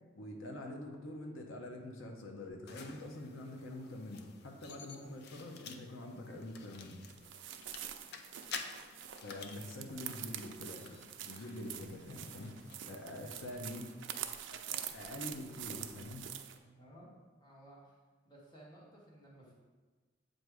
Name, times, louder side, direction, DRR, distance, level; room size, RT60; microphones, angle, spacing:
voice 1, 0.1-7.0 9.2-11.0 11.2-12.5 12.8-13.9 14.5-16.3, left 1 dB, 85° left, 2 dB, 0.8 m, -45 dB
sound 1, 2.7-13.9, left 5 dB, 55° left, 0.4 m, -51 dB
sound 2, 7.1-16.6, right 10 dB, 65° right, 0.4 m, -46 dB
voice 2, 16.6-18.0 18.2-19.5, right 1 dB, 20° left, -5 dB, 1.2 m, -57 dB
7.8 x 2.6 x 4.7 m, 1.3 s
head